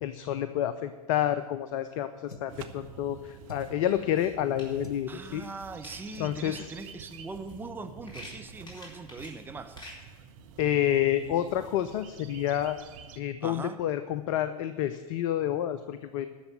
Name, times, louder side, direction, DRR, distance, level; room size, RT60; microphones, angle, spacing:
voice 1, 0.0-5.4 6.2-6.7 10.6-12.8 13.2-16.3, left 11 dB, 55° left, 12 dB, 0.6 m, -29 dB
sound 1, 2.3-2.6 3.4-3.9 4.8-5.1 6.1-6.4 7.2-7.3 7.6-7.8 8.1-8.3, left 4 dB, 85° left, 0.8 m, -49 dB
sound 2, 2.5-13.2, right 7 dB, 60° right, 1.0 m, -49 dB
sound 3, 3.3-3.4 3.8-6.2 6.6-9.9, left 1 dB, 25° left, 4.2 m, -49 dB
voice 2, 5.1-9.8 13.4-13.8, right 3 dB, 10° right, 8 dB, 0.7 m, -41 dB
11.5 x 6.9 x 9.2 m, 1.3 s
figure-of-eight pair, 85°, 19 cm